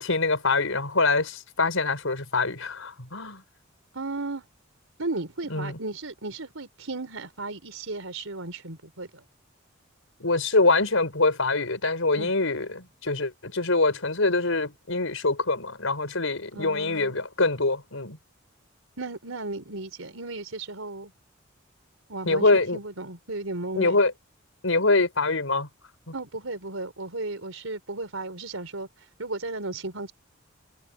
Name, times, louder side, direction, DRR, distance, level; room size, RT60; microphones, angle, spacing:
voice 1, 0.0-3.4 5.5-5.8 10.2-18.2 22.3-22.8 23.8-24.1 24.6-25.7 26.1-26.2, left 3 dB, 80° left, 5.2 m, -24 dB
voice 2, 3.9-4.4 5.0-9.2 12.2-12.3 16.5-17.2 19.0-21.1 22.1-24.0 26.1-28.9 29.2-30.1, right 2 dB, 85° right, 4.2 m, -35 dB
head